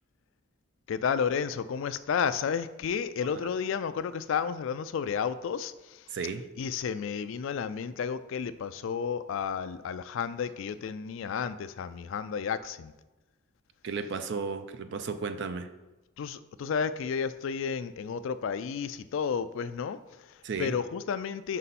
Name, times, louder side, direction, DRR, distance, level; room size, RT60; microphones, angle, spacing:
voice 1, 0.9-6.2 6.6-12.9 16.2-21.6, left 6 dB, 60° left, 13 dB, 0.3 m, -32 dB
voice 2, 6.1-6.4 13.8-15.7 20.4-20.7, right 5 dB, 55° right, 9 dB, 0.4 m, -34 dB
5.5 x 5.4 x 4.1 m, 1.1 s
head